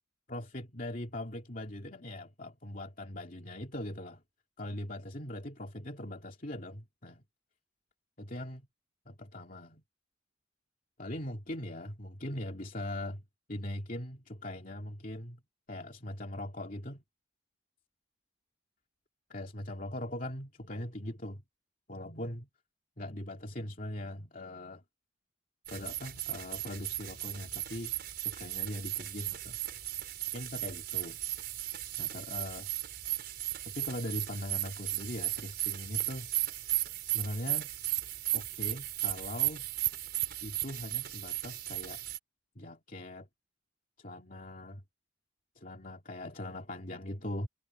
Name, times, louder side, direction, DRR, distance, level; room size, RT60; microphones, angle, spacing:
voice 1, 0.3-4.2 4.6-7.2 8.2-8.7 9.1-9.8 11.0-13.2 13.5-15.4 15.7-17.0 19.3-21.4 21.9-22.5 23.0-24.8 25.7-27.9 28.2-29.6 30.3-31.2 32.0-32.7 33.7-36.3 37.0-37.7 38.3-39.7 40.4-42.0 42.6-43.3 44.0-44.8 45.6-47.5, left 1 dB, 45° left, 2.6 m, -40 dB
sound 1, 25.7-42.2, right 15 dB, 55° right, 6.1 m, -36 dB
head